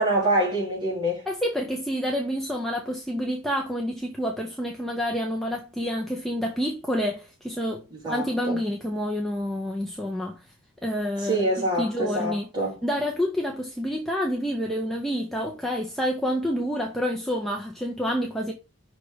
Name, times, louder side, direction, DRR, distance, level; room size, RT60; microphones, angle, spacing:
voice 1, 0.0-1.2 7.9-8.6 11.2-12.8, right 1 dB, 20° right, 2.2 m, -26 dB
voice 2, 1.3-10.4 10.8-11.5 11.8-12.5 12.8-18.5, equal, ahead, 0.6 m, -28 dB
5.8 x 3.3 x 4.9 m
head